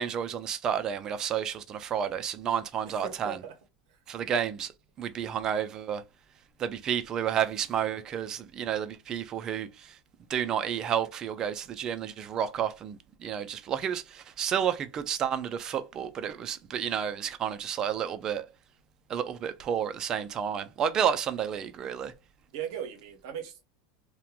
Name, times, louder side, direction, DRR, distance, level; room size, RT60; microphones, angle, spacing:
voice 1, 0.0-3.4 4.1-4.7 5.0-6.0 6.6-10.0 10.3-18.5 19.1-22.1, right 8 dB, 30° right, 0.4 m, -31 dB
voice 2, 2.8-3.5 3.9-4.0 22.5-23.6, right 9 dB, 70° right, 0.7 m, -38 dB
2.8 x 2.2 x 2.4 m
supercardioid pair, 130°, 2 cm